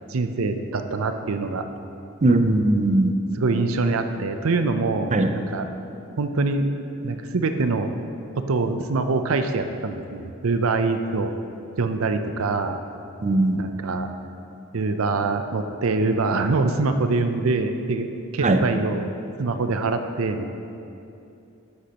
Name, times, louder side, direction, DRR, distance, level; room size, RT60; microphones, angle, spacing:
voice 1, 0.1-1.7 3.3-5.7 6.2-6.7 7.0-7.9 8.4-11.3 11.8-12.8 13.6-14.1 14.7-20.5, right 3 dB, 90° right, 7 dB, 0.6 m, -24 dB
voice 2, 2.2-3.2 5.1-5.3 13.2-13.6 18.4-18.6, right 2 dB, 35° right, 7 dB, 0.5 m, -19 dB
11.5 x 8.2 x 2.9 m, 2.7 s
head